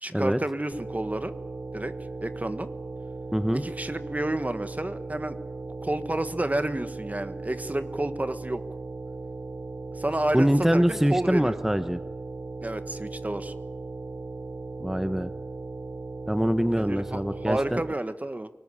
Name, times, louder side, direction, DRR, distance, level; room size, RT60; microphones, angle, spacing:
voice 1, 0.0-1.4 1.7-1.9 2.2-2.7 3.5-5.4 5.8-8.6 9.9-11.6 12.6-13.5 16.8-18.5, right 1 dB, 35° right, 11 dB, 1.4 m, -30 dB
sound 1, 0.7-17.9, right 3 dB, 70° right, 0.9 m, -37 dB
voice 2, 3.3-3.6 10.3-12.0 14.8-15.3 16.3-17.8, equal, 10° right, 10 dB, 0.9 m, -24 dB
23.5 x 19.0 x 9.7 m, 1.2 s
wide cardioid pair, 55°, 5 cm